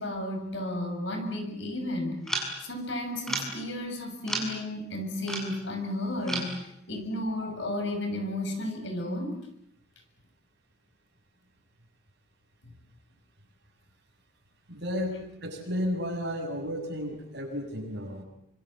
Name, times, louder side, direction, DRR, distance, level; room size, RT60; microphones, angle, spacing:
voice 1, 0.0-2.2 2.6-6.5 6.9-9.4 12.7-12.8, left 1 dB, 60° left, 4 dB, 6.5 m, -33 dB
sound 1, 2.3-2.6 3.2-3.6 4.2-4.6 5.3-5.5 6.3-6.7, right 1 dB, ahead, 6.5 m, -32 dB
voice 2, 14.7-18.2, equal, 55° right, 2 dB, 7.2 m, -33 dB
28.5 x 26.5 x 7.7 m, 0.73 s
head